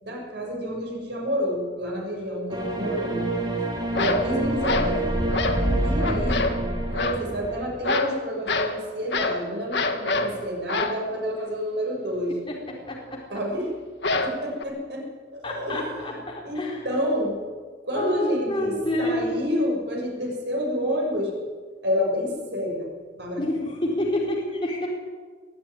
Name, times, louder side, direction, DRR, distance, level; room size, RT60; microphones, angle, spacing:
voice 1, 0.0-3.2 4.0-5.1 5.8-12.3 13.3-13.7 14.2-15.1 15.3-16.1 16.4-17.4 17.8-21.3 21.8-23.5, equal, 65° right, -1 dB, 6.7 m, -29 dB
sound 1, 2.5-7.6, right 1 dB, 25° right, 4.2 m, -26 dB
sound 2, 3.9-4.3 4.6-5.0 5.3-5.6 6.0-6.6 6.9-7.2 7.8-8.2 8.5-8.8 9.1-9.4 9.7-10.3 10.7-11.0 14.0-14.6, left 3 dB, 70° left, 1.8 m, -26 dB
voice 2, 15.4-16.9 17.9-19.4 23.4-24.9, left 1 dB, 25° left, -3 dB, 3.9 m, -28 dB
22.0 x 12.5 x 9.7 m, 1.5 s
head